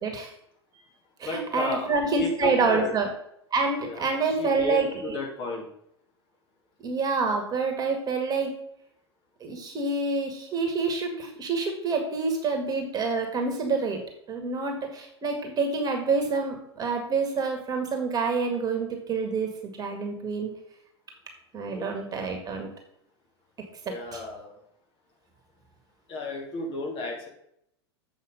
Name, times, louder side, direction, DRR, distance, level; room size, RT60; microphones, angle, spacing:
voice 1, 0.0-0.3 1.2-3.1 3.5-5.2 6.8-8.6 9.4-14.0 14.3-19.5 19.8-20.5 21.5-22.7 23.9-24.2, right 4 dB, 25° right, 4 dB, 1.9 m, -27 dB
voice 2, 1.2-1.9 2.2-3.0 3.8-4.1 4.4-5.7 21.6-21.9 23.8-24.6 26.1-27.3, left 2 dB, 35° left, -1 dB, 2.8 m, -33 dB
8.0 x 5.4 x 5.1 m, 0.71 s
figure-of-eight pair, 90°, 14 cm